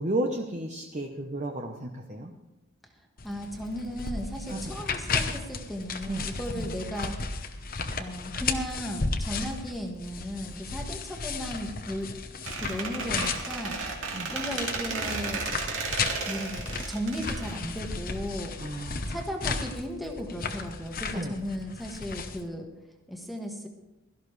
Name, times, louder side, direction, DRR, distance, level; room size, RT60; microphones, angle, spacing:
voice 1, 0.0-2.3 4.5-4.7 6.1-6.3 6.5-6.7 14.1-14.3 18.6-19.0 21.1-21.3, right 1 dB, 35° right, 1 dB, 0.9 m, -33 dB
sound 1, 3.2-22.4, left 4 dB, 40° left, 0.9 m, -34 dB
voice 2, 3.2-7.2 8.0-12.1 12.6-13.8 14.3-15.5 16.3-18.6 19.1-22.7 23.1-23.7, equal, ahead, 0 dB, 1.5 m, -35 dB
Squeak, 12.4-18.2, right 4 dB, 65° right, 2.3 m, -34 dB
17.0 x 13.0 x 3.3 m, 1.0 s
head